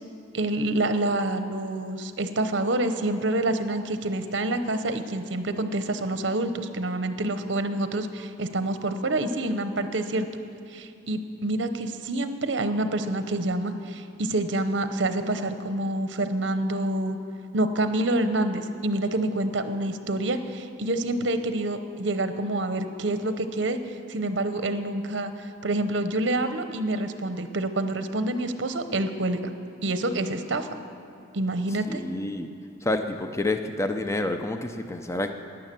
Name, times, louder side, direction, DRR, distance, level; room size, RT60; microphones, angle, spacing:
voice 1, 0.3-10.3 10.7-17.2 17.5-23.8 24.1-25.3 25.6-29.4 29.8-30.7 31.3-32.0, right 1 dB, 65° right, 9 dB, 0.8 m, -27 dB
voice 2, 31.7-32.5 32.8-35.3, left 2 dB, 15° left, 7 dB, 0.5 m, -29 dB
12.0 x 10.0 x 7.6 m, 2.5 s
head